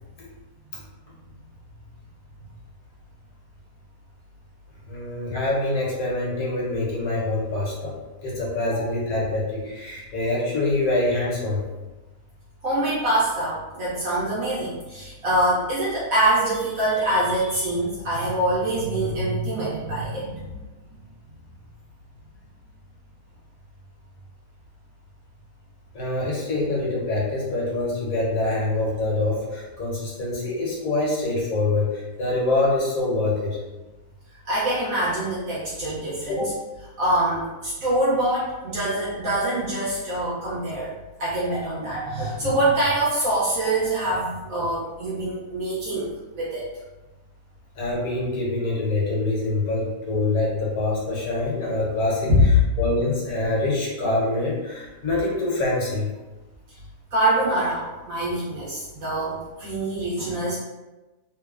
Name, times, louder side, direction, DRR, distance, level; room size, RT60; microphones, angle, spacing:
voice 1, 4.9-11.6 25.9-33.6 36.3-36.5 47.8-56.1, left 2 dB, 70° left, -4 dB, 1.3 m, -25 dB
voice 2, 12.6-20.5 34.4-36.5 37.0-40.9 41.2-46.7 52.3-52.6 57.1-60.6, right 1 dB, 65° right, -8 dB, 1.1 m, -24 dB
3.1 x 2.0 x 2.3 m, 1.1 s
omnidirectional pair, 1.6 m